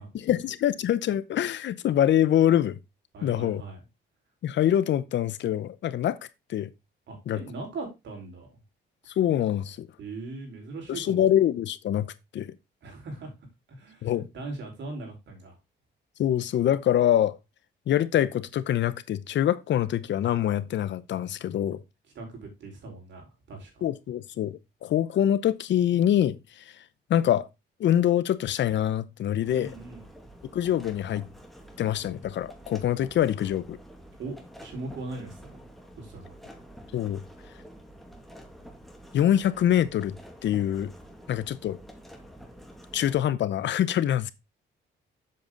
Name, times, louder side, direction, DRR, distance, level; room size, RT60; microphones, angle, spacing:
voice 1, 0.1-2.8 3.2-3.6 4.4-6.2 6.5-6.7 7.3-7.4 9.2-9.9 10.9-12.5 14.0-14.3 16.2-17.3 17.9-21.8 23.8-26.4 27.1-27.5 27.8-29.7 30.5-31.3 31.8-33.8 36.9-37.2 39.1-40.1 40.4-40.9 41.3-41.8 42.9-44.3, left 11 dB, 65° left, 0.8 m, -25 dB
voice 2, 3.1-3.8 7.1-8.5 10.0-11.2 12.8-13.3 13.7-15.6 22.1-23.8 29.5-30.0 34.2-35.6 36.0-36.3, right 3 dB, 65° right, 4.7 m, -40 dB
sound 1, 29.4-43.2, equal, ahead, 2.3 m, -48 dB
7.6 x 6.9 x 3.8 m
cardioid pair, 90°, 20 cm